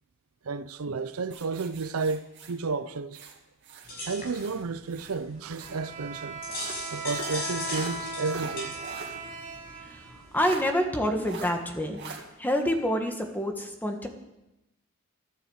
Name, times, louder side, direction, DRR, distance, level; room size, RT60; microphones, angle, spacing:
voice 1, 0.4-3.2 4.1-6.4 6.9-8.7, right 4 dB, 80° right, 0.6 m, -32 dB
sound 1, 1.3-3.9 4.3-5.8 6.5-9.2 9.5-9.6 10.3-10.6 11.2-11.5 11.9-12.2, right 4 dB, 55° right, 2.2 m, -43 dB
sound 2, 3.8-10.7, left 1 dB, 45° left, 6.0 m, -39 dB
Bowed string instrument, 5.6-10.6, right 3 dB, 35° right, 3.1 m, -38 dB
voice 2, 10.3-12.0 12.4-14.1, equal, 10° left, 1.6 m, -27 dB
14.0 x 9.2 x 8.0 m
head